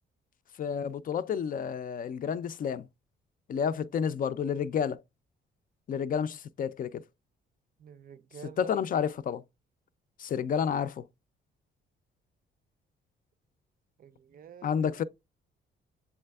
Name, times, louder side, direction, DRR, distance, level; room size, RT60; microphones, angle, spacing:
voice 1, 0.6-2.9 3.5-5.0 5.9-7.0 8.6-9.4 10.2-11.0 14.6-15.0, left 7 dB, 45° left, 0.4 m, -30 dB
voice 2, 7.8-8.7 14.0-15.0, right 8 dB, 45° right, 0.5 m, -49 dB
7.2 x 3.3 x 2.2 m
cardioid pair, 90°, 20 cm